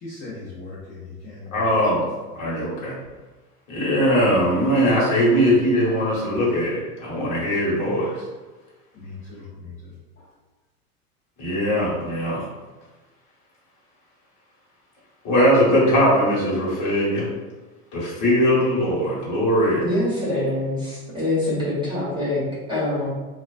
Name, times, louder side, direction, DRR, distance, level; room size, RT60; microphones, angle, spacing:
voice 1, 0.0-1.7 8.9-9.7 10.2-10.3, left 3 dB, 25° left, -8 dB, 0.6 m, -38 dB
voice 2, 1.5-2.0 2.3-2.9 3.7-8.1 11.4-12.4 15.2-17.3 17.9-19.8, equal, 40° left, -6 dB, 1.2 m, -20 dB
voice 3, 19.8-23.1, left 1 dB, 10° right, -9 dB, 0.8 m, -25 dB
2.3 x 2.2 x 2.4 m, 1.2 s
hypercardioid pair, 95°, 46 cm